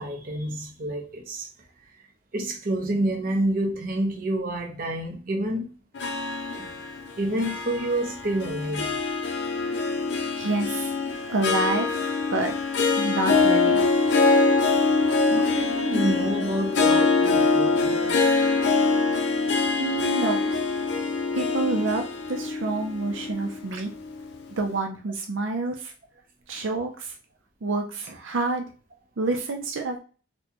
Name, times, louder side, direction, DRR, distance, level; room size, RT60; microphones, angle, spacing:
voice 1, 0.0-1.5 1.9-2.0 2.3-5.7 6.6-6.7 7.2-9.0 15.3-18.2, right 1 dB, 45° right, 0.8 m, -28 dB
Harp, 5.9-24.4, left 4 dB, 65° left, 0.6 m, -24 dB
voice 2, 9.6-10.0 10.4-10.9 11.3-12.5 13.0-13.9 19.2-19.3 19.8-20.4 21.3-23.9 24.6-25.9 26.5-27.1 27.6-28.6 29.2-30.0, right 2 dB, 85° right, 0.5 m, -28 dB
4.2 x 2.2 x 2.9 m
head